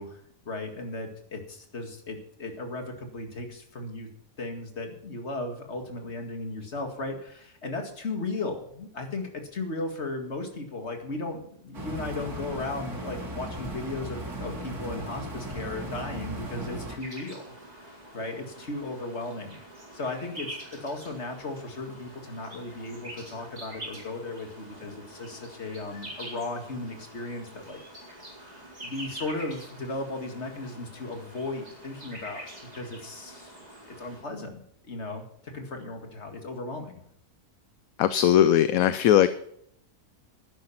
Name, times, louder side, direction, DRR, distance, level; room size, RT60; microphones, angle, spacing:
voice 1, 0.0-4.1 4.4-17.5 17.8-19.6 19.9-27.8 28.8-32.4 32.7-33.6 34.0-37.0, left 2 dB, 45° left, 4 dB, 2.4 m, -36 dB
sound 1, 11.7-17.0, right 1 dB, 80° right, 3.6 m, -37 dB
sound 2, 17.0-34.2, right 1 dB, 25° right, 4.4 m, -45 dB
voice 2, 38.0-39.3, left 11 dB, 70° left, 13 dB, 1.0 m, -19 dB
12.0 x 10.5 x 5.7 m, 0.69 s
omnidirectional pair, 1.6 m